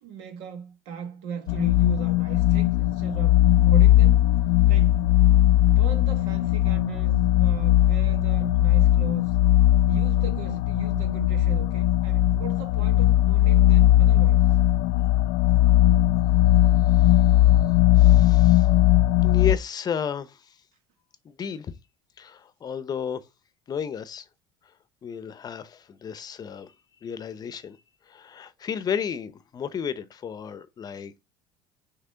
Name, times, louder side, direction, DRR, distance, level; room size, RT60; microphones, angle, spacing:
voice 1, 0.0-3.4 3.6-4.3 4.7-5.0 5.7-9.4 9.9-14.4, right 7 dB, 75° right, 1.7 m, -37 dB
sound 1, 1.5-19.6, left 14 dB, 85° left, 0.4 m, -19 dB
voice 2, 16.9-17.3 18.0-18.7 19.2-20.6 21.2-21.7 22.2-23.2 23.7-24.3 25.0-26.7 27.0-27.8 28.1-31.3, left 7 dB, 35° left, 0.7 m, -33 dB
6.1 x 3.1 x 5.6 m
supercardioid pair, 95°, 11 cm